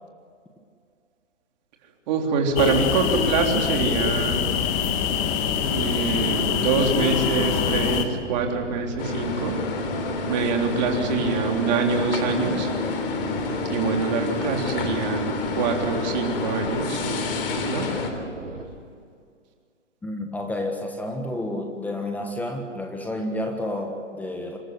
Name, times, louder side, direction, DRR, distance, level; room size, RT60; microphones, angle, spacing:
voice 1, 2.1-4.4 5.7-9.6 10.3-12.7 13.2-13.3 13.6-17.1 17.7-17.9, right 5 dB, 35° right, 2 dB, 3.6 m, -25 dB
sound 1, 2.4-18.7, right 2 dB, 90° right, 5.0 m, -36 dB
sound 2, 2.6-8.1, left 8 dB, 25° left, 1.6 m, -24 dB
sound 3, 9.0-18.1, left 4 dB, 45° left, 3.7 m, -29 dB
voice 2, 20.0-24.6, left 1 dB, 5° left, 3 dB, 1.5 m, -30 dB
26.5 x 13.5 x 9.7 m, 2.2 s
hypercardioid pair, 140°, 37 cm